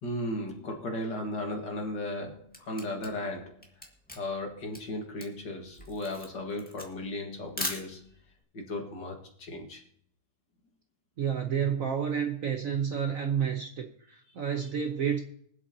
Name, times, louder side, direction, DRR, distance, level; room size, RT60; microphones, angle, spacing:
voice 1, 0.0-3.6 4.1-8.1 8.5-9.8, left 1 dB, 60° left, 2 dB, 2.4 m, -36 dB
Camera, 2.1-8.3, left 1 dB, 5° left, 1.6 m, -40 dB
voice 2, 11.2-15.2, right 8 dB, 55° right, 5 dB, 1.0 m, -30 dB
24.0 x 8.1 x 2.8 m, 0.66 s
omnidirectional pair, 2.2 m